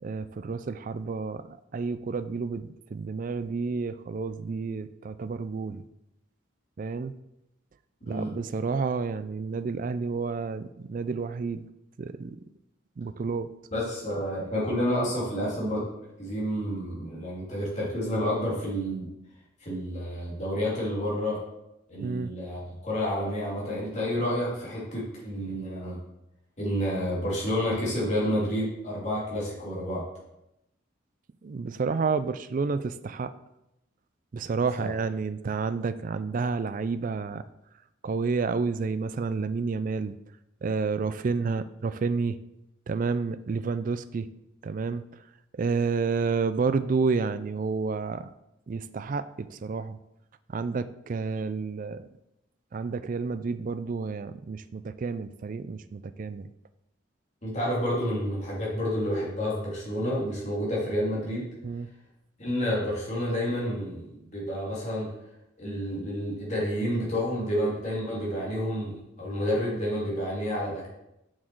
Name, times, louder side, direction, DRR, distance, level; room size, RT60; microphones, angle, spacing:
voice 1, 0.0-5.8 6.8-7.1 8.0-11.7 12.0-12.4 13.0-13.5 22.0-22.3 31.4-33.3 34.3-37.4 38.0-40.2 40.6-42.4 42.9-44.3 44.6-45.0 45.6-48.3 48.7-50.0 50.5-52.1 52.7-56.5 61.6-61.9, right 4 dB, 40° right, 12 dB, 0.3 m, -30 dB
voice 2, 13.7-15.8 16.2-19.1 19.6-21.4 21.9-26.0 26.6-30.0 34.8-34.9 57.4-61.5 62.4-65.1 65.6-70.9, equal, 35° left, -5 dB, 2.8 m, -29 dB
6.3 x 6.3 x 4.6 m, 0.87 s
head